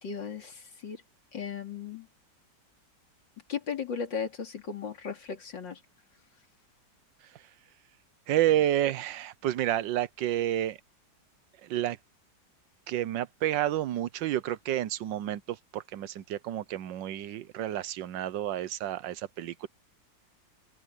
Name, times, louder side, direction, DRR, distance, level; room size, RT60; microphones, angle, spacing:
voice 1, 0.0-1.0 1.3-2.1 3.5-5.8, left 6 dB, 90° left, 3.6 m, -36 dB
voice 2, 8.3-10.8 11.6-12.0 12.9-19.7, right 12 dB, 85° right, 1.5 m, -30 dB
open air
omnidirectional pair, 1.9 m